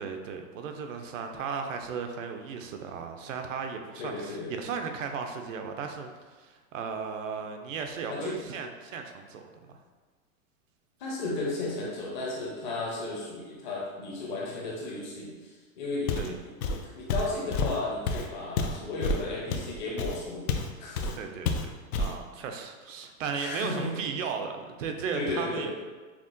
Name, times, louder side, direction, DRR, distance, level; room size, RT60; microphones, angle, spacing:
voice 1, 0.0-9.4 9.7-9.8 16.2-16.4 21.1-21.5 22.0-25.7, right 6 dB, 65° right, 5 dB, 0.5 m, -35 dB
voice 2, 4.0-4.5 8.1-8.4 11.0-20.5 20.8-21.1 23.4-24.0 25.1-25.7, left 2 dB, 35° left, -3 dB, 0.6 m, -34 dB
Walk footsteps, 16.1-16.4 16.6-20.7 21.0-21.2 21.5-22.2, left 3 dB, 85° left, 0.6 m, -29 dB
5.9 x 2.2 x 2.5 m, 1.3 s
supercardioid pair, 170°, 43 cm